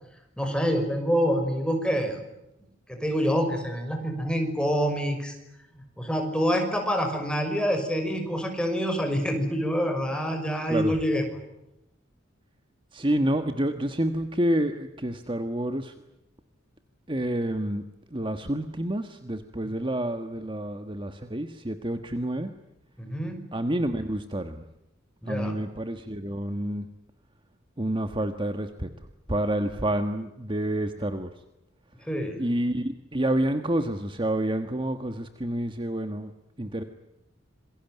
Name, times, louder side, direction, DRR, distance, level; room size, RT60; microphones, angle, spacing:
voice 1, 0.4-2.2 2.9-5.3 5.7-11.2 23.0-23.4 25.2-25.6 32.1-32.4, equal, 5° left, 4 dB, 6.0 m, -26 dB
voice 2, 12.9-15.9 17.1-17.8 18.1-22.5 23.5-24.6 25.3-26.9 27.8-28.9 29.3-31.3 32.4-36.3 36.6-36.8, right 1 dB, 25° right, 8 dB, 1.5 m, -28 dB
27.5 x 22.5 x 9.3 m, 0.89 s
head